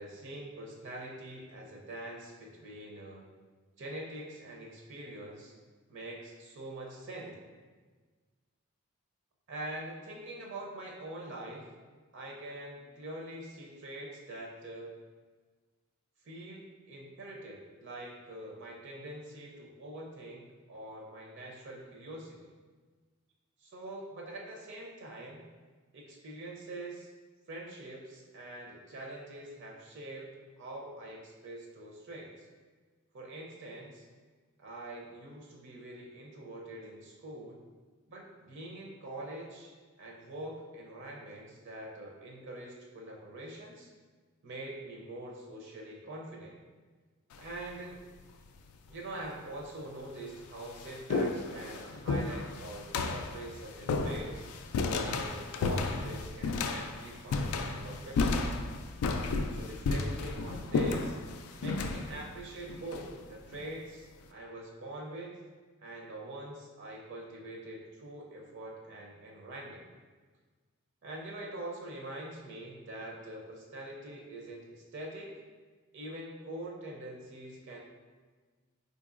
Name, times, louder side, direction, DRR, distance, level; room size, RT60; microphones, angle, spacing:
voice 1, 0.0-3.2 3.8-5.5 5.9-7.3 9.5-11.7 12.1-14.9 16.2-22.4 23.6-25.4 25.9-27.1 27.5-30.3 30.6-32.3 33.1-34.1 34.6-37.6 38.1-39.7 40.0-43.9 44.4-46.6 47.4-48.0 48.9-54.5 54.9-58.7 59.5-61.2 61.6-65.3 65.8-69.8 71.0-75.4 75.9-77.8, right 1 dB, 55° right, -1 dB, 0.5 m, -44 dB
sound 1, 47.3-47.7 48.7-48.8 49.6-49.7 50.1-63.6, left 3 dB, 85° left, 0.3 m, -33 dB
3.9 x 2.8 x 2.4 m, 1.4 s
head